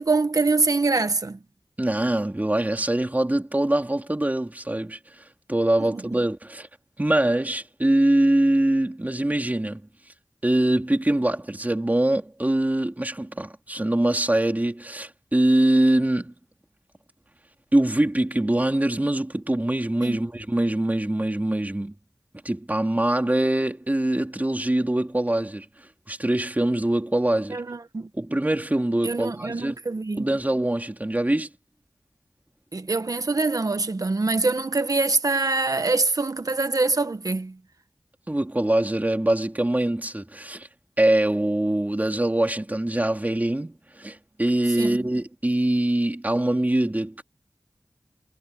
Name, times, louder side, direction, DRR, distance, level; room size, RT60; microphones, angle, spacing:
voice 1, 0.0-1.4 5.9-6.0 20.0-20.2 27.5-28.1 29.0-30.3 32.7-37.5 44.8-45.0, right 3 dB, 65° right, 1.7 m, -24 dB
voice 2, 1.8-5.0 5.5-6.7 7.0-9.8 10.4-16.3 17.7-21.9 22.4-25.7 26.1-27.6 28.1-29.8 30.2-31.5 38.3-40.7 41.0-47.2, right 1 dB, 25° right, 3.7 m, -23 dB
wide cardioid pair, 60°, 7 cm